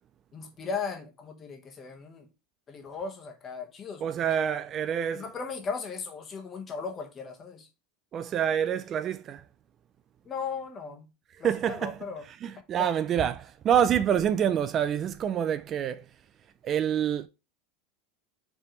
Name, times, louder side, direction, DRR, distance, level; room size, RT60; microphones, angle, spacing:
voice 1, 0.3-2.3 2.7-4.0 5.1-7.7 10.2-11.1 11.4-12.2 12.8-12.9, left 5 dB, 30° left, 1.2 m, -37 dB
voice 2, 4.0-5.2 8.1-9.4 11.4-12.0 12.4-16.0 16.6-17.3, right 9 dB, 35° right, 0.3 m, -27 dB
5.0 x 3.4 x 3.1 m
supercardioid pair, 130°, 0 cm